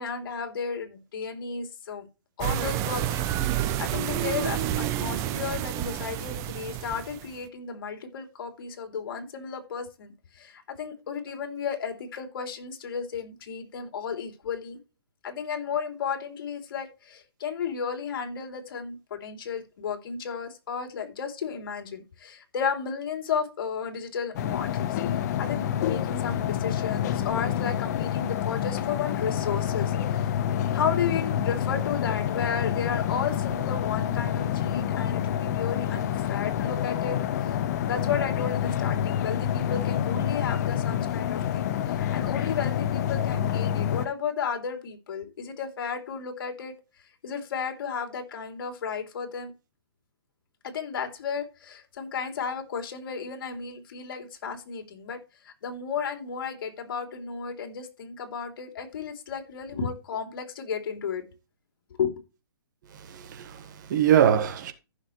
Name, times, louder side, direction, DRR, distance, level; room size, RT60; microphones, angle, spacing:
voice 1, 0.0-2.1 2.4-14.8 15.2-25.0 25.4-30.3 30.7-37.6 37.8-46.7 47.2-49.5 50.6-55.2 55.4-61.2 62.0-62.2, left 6 dB, 55° left, 3.2 m, -33 dB
sound 1, 2.4-7.4, right 11 dB, 20° right, 0.7 m, -29 dB
sound 2, 24.3-44.1, left 10 dB, 40° left, 1.0 m, -28 dB
voice 2, 62.9-64.7, right 9 dB, 45° right, 1.7 m, -23 dB
15.0 x 6.5 x 3.2 m
hypercardioid pair, 150°, 14 cm